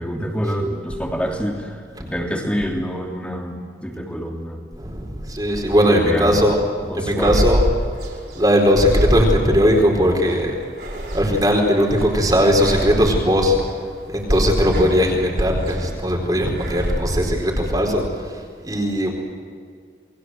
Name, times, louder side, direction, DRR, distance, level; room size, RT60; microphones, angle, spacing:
voice 1, 0.0-4.6 5.8-6.4 6.9-7.4, equal, 5° left, 1 dB, 3.1 m, -26 dB
voice 2, 4.7-6.6 6.9-7.6 8.0-10.5 10.9-13.6 14.1-19.1, equal, 20° right, 1 dB, 4.2 m, -19 dB
sound 1, 7.2-17.0, equal, 65° right, 5.5 m, -27 dB
29.0 x 21.0 x 7.8 m, 2.1 s
head